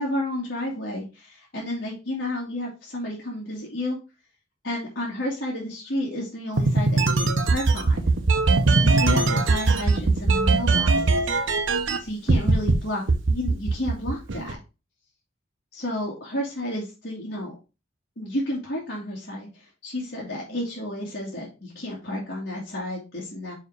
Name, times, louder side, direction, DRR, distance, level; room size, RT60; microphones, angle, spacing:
voice 1, 0.0-4.0 4.6-8.0 8.8-11.4 12.0-14.6 15.7-17.6 18.2-23.5, left 1 dB, 60° left, -7 dB, 2.3 m, -31 dB
sound 1, 6.6-12.0 12.3-12.7 13.1-14.5, right 3 dB, 85° right, 0.9 m, -20 dB
5.4 x 4.7 x 4.8 m, 0.29 s
head